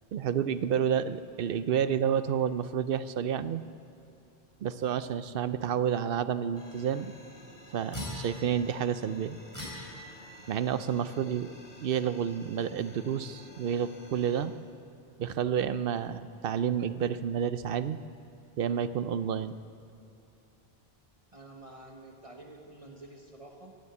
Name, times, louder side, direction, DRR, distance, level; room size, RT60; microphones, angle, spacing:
voice 1, 0.1-3.6 4.6-7.1 7.7-9.4 10.5-11.5 11.8-14.5 15.2-18.0 18.6-19.6, right 8 dB, 65° right, 13 dB, 0.7 m, -30 dB
sound 1, 6.5-14.5, left 2 dB, 65° left, 2.1 m, -53 dB
sound 2, 7.9-8.8 9.5-10.5, left 1 dB, 20° left, 4.8 m, -40 dB
voice 2, 21.3-23.8, right 2 dB, 35° right, 1 dB, 1.2 m, -49 dB
17.0 x 9.8 x 8.1 m, 2.8 s
omnidirectional pair, 1.0 m